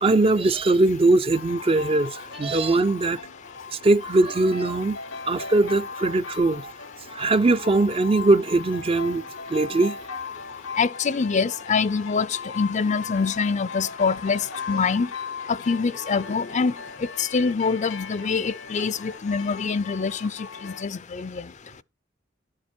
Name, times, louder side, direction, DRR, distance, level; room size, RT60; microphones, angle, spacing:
voice 1, 0.0-3.2 3.8-5.0 5.3-6.6 7.1-9.2 9.5-10.2, right 2 dB, 30° right, 0.5 m, -21 dB
sound 1, 1.3-20.8, left 5 dB, 80° left, 0.8 m, -38 dB
voice 2, 10.8-14.4 14.7-15.1 15.5-16.7 17.2-21.4, left 5 dB, 40° left, 0.5 m, -25 dB
11.0 x 7.4 x 4.3 m
head